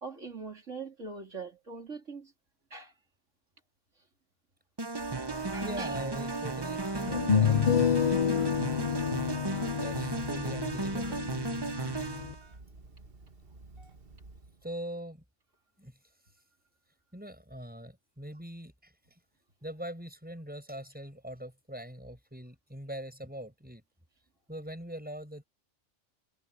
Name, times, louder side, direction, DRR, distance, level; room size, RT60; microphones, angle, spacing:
voice 1, 0.0-2.3 2.7-2.9 5.4-6.0 9.2-9.4 12.1-12.3, right 4 dB, 80° right, 3.8 m, -42 dB
sound 1, 4.8-12.4, right 3 dB, 20° right, 0.9 m, -35 dB
Telephone, 5.0-14.7, right 2 dB, 50° right, 2.0 m, -51 dB
voice 2, 5.5-7.6 8.0-8.7 9.7-11.3 14.6-15.2 15.8-16.0 17.1-19.2 19.6-23.8 24.5-25.5, right 1 dB, 5° right, 6.4 m, -42 dB
sound 2, 6.0-6.1 7.1-12.3, left 7 dB, 45° left, 0.7 m, -29 dB
omnidirectional pair, 1.2 m